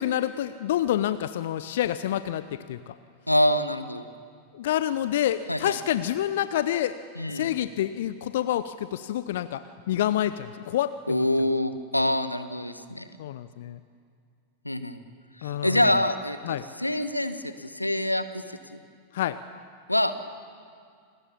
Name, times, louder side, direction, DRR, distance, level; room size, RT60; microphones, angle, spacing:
voice 1, 0.0-2.9 4.5-7.0 7.3-11.2 13.2-13.8 15.4-15.8 16.4-16.6 19.1-19.4, left 12 dB, 55° left, 14 dB, 0.6 m, -28 dB
voice 2, 3.3-4.0 5.5-5.8 7.1-7.5 11.1-13.1 14.6-15.0 15.4-18.8 19.9-20.1, left 1 dB, 85° left, 11 dB, 1.1 m, -26 dB
28.0 x 20.0 x 7.2 m, 2.2 s
figure-of-eight pair, 90°, 0 cm